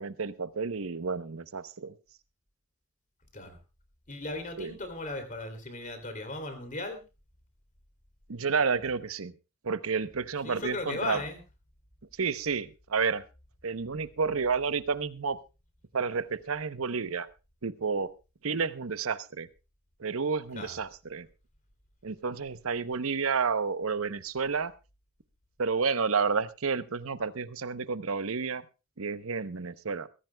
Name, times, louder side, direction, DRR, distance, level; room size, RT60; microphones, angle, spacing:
voice 1, 0.0-2.0 4.6-4.7 8.3-9.3 9.6-11.2 12.2-13.2 13.6-15.4 15.9-17.3 17.6-18.1 18.4-19.5 20.0-21.3 22.0-24.7 25.6-28.6 29.0-30.1, right 5 dB, 80° right, 13 dB, 0.8 m, -30 dB
voice 2, 4.1-7.0 10.4-11.4 20.5-20.7, left 2 dB, 40° left, 7 dB, 3.0 m, -37 dB
22.0 x 15.0 x 2.3 m, 0.29 s
head